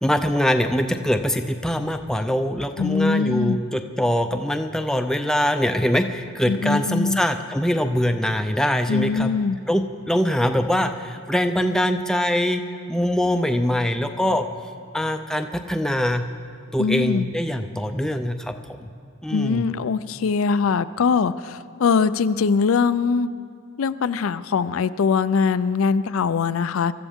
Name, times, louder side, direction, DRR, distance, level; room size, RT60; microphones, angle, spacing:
voice 1, 0.0-9.3 9.7-12.6 12.9-14.5 14.9-16.2 16.7-18.5 18.8-18.9 19.2-19.6, equal, 5° left, 6 dB, 0.4 m, -23 dB
voice 2, 2.8-3.6 6.5-7.2 8.9-9.6 16.8-17.3 19.3-23.3 23.8-26.9, left 5 dB, 75° left, 14 dB, 0.4 m, -22 dB
24.0 x 13.5 x 3.6 m, 2.3 s
head